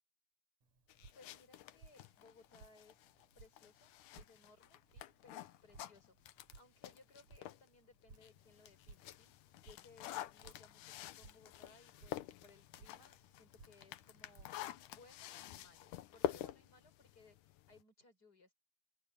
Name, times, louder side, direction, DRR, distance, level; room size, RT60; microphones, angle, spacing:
Drip, 0.6-15.1, right 4 dB, 60° right, 6.2 m, -64 dB
sound 1, 0.9-7.7 8.1-17.8, left 13 dB, 80° left, 2.5 m, -48 dB
voice 1, 1.1-3.1 3.3-14.5 14.9-18.5, left 3 dB, 30° left, 6.5 m, -64 dB
open air
omnidirectional pair, 3.6 m